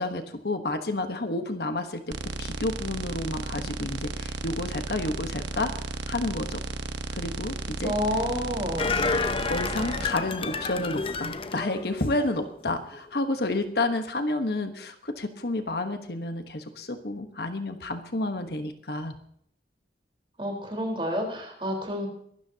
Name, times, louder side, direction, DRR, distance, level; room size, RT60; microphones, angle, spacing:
voice 1, 0.0-5.7 6.1-6.6 7.1-7.9 8.9-9.0 9.4-19.1, left 2 dB, 60° left, 7 dB, 1.2 m, -30 dB
sound 1, 2.1-10.1, right 3 dB, 85° right, 1.0 m, -34 dB
voice 2, 7.8-8.9 20.4-22.1, equal, 30° right, 1 dB, 4.1 m, -29 dB
sound 2, 8.8-12.5 12.9-13.0, left 4 dB, 30° left, 0.7 m, -30 dB
23.0 x 13.0 x 2.9 m, 0.69 s
head